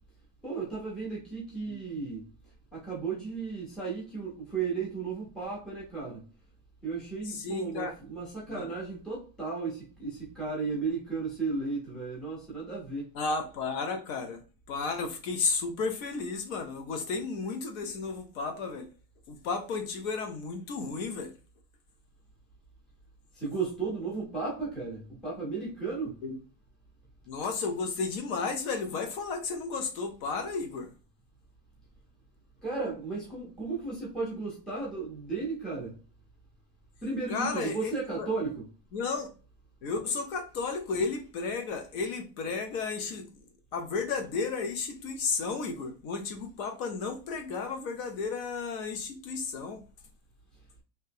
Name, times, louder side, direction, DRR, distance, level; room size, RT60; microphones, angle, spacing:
voice 1, 0.4-2.2 2.7-6.2 6.8-13.1 23.4-26.2 32.6-35.9 37.0-38.6, right 4 dB, ahead, 0.5 m, -34 dB
voice 2, 7.2-8.0 8.5-8.7 13.1-14.4 14.7-18.9 19.3-21.3 26.2-26.4 27.3-30.9 37.3-38.3 38.9-39.3 39.8-43.3 43.7-49.8, left 4 dB, 55° left, 0.9 m, -33 dB
3.2 x 2.8 x 3.3 m
supercardioid pair, 170°, 49 cm